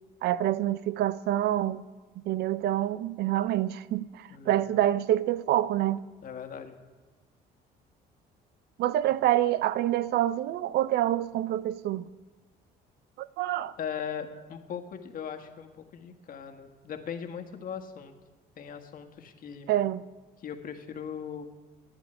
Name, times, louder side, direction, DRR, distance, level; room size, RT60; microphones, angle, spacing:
voice 1, 0.2-1.9 2.2-6.0 8.8-12.1 13.2-13.7 19.7-20.0, right 13 dB, 75° right, 0.6 m, -27 dB
voice 2, 4.3-4.6 6.2-6.7 9.0-9.2 13.8-18.1 18.5-19.8 20.4-21.5, left 7 dB, 55° left, 1.6 m, -39 dB
12.0 x 9.9 x 9.0 m
cardioid pair, 110°, 17 cm